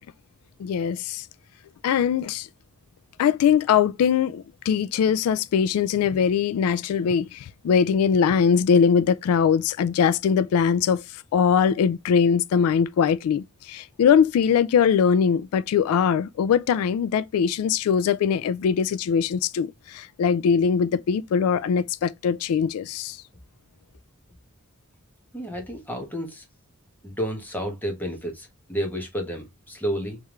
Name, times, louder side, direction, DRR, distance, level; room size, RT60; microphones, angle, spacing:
voice 1, 0.6-1.3 1.8-2.5 3.2-23.2, left 7 dB, 80° left, 0.3 m, -21 dB
voice 2, 25.3-26.4 27.0-30.2, equal, 10° left, 1.2 m, -31 dB
3.5 x 3.3 x 3.0 m
head